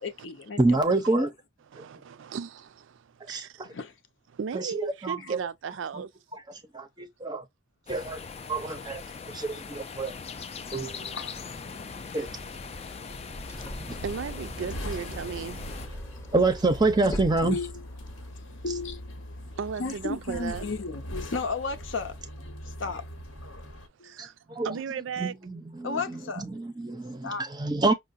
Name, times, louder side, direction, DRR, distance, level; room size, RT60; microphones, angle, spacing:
voice 1, 0.0-0.8 1.1-1.2 3.7-3.9 5.2-5.3 9.5-9.6 11.1-11.4 13.5-13.9 14.8-15.0 17.4-17.7 18.0-23.0 24.0-24.1 25.8-26.4 26.9-27.4, left 4 dB, 70° left, 0.7 m, -35 dB
voice 2, 0.6-1.3 3.3-3.7 4.5-5.5 5.9-6.0 6.3-7.4 7.9-8.2 8.5-9.0 9.3-10.1 10.7-11.1 12.1-12.3 16.3-17.6 24.2-24.7 25.2-27.9, right 3 dB, 20° right, 0.5 m, -27 dB
voice 3, 1.7-2.9 3.3-3.6 4.3-6.1 14.0-15.6 19.6-20.6 24.0-24.3 24.6-25.4, right 6 dB, 70° right, 0.4 m, -35 dB
sound 1, 7.9-15.9, left 5 dB, 30° left, 0.3 m, -40 dB
sound 2, 10.7-23.9, equal, 85° left, 1.0 m, -42 dB
sound 3, 12.3-18.3, equal, 15° left, 0.7 m, -43 dB
5.5 x 2.1 x 2.5 m
head